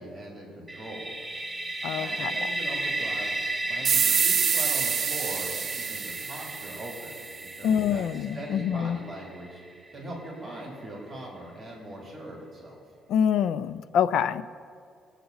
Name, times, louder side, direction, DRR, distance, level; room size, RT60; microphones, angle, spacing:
voice 1, 0.0-1.5 1.9-3.3 3.6-9.6 9.9-12.8, right 1 dB, 25° right, -3 dB, 3.0 m, -41 dB
sound 1, 0.7-10.4, right 2 dB, 5° right, 0.9 m, -34 dB
voice 2, 1.8-2.3 7.6-9.0 13.1-14.4, left 8 dB, 65° left, 13 dB, 0.4 m, -25 dB
sound 2, 3.8-7.2, right 7 dB, 40° right, 0.5 m, -26 dB
19.5 x 8.3 x 4.0 m, 2.4 s
cardioid pair, 160°, 0 cm